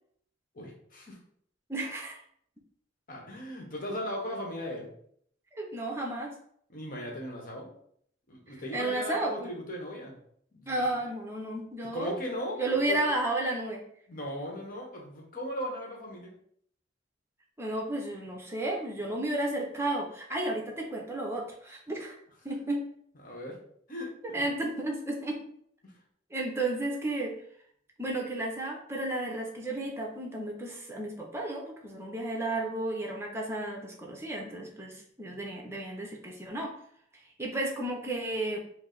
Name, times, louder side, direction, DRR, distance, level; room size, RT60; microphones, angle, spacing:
voice 1, 0.5-1.2 3.1-4.9 6.7-7.7 8.3-10.2 10.5-10.8 11.9-13.0 14.1-16.3 23.2-23.6 23.9-24.4 25.8-26.0, left 1 dB, 45° left, 0 dB, 1.0 m, -38 dB
voice 2, 1.7-2.2 5.6-6.3 8.7-9.5 10.7-13.8 17.6-22.2 22.4-22.8 24.3-25.4 26.3-27.3 28.0-36.7 37.4-38.6, right 2 dB, 15° right, 0 dB, 0.7 m, -33 dB
4.6 x 2.0 x 3.9 m, 0.65 s
head